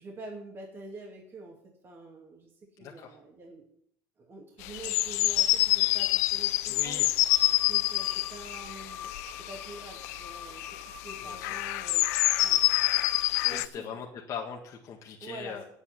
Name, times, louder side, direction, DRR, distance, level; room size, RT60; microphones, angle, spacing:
voice 1, 0.0-2.5 2.8-3.7 4.2-7.1 7.5-9.1 9.4-12.1 12.4-12.6 13.4-14.0 15.2-15.6, right 2 dB, 30° right, 0 dB, 2.3 m, -46 dB
voice 2, 2.8-3.2 6.7-7.1 11.2-11.5 13.5-15.6, left 7 dB, 40° left, -1 dB, 1.7 m, -40 dB
sound 1, 4.6-10.3 10.6-13.7, left 18 dB, 85° left, 0.5 m, -27 dB
sound 2, 7.3-13.3, left 5 dB, 10° left, 2.0 m, -45 dB
8.5 x 8.4 x 8.1 m, 0.68 s
supercardioid pair, 120°, 8 cm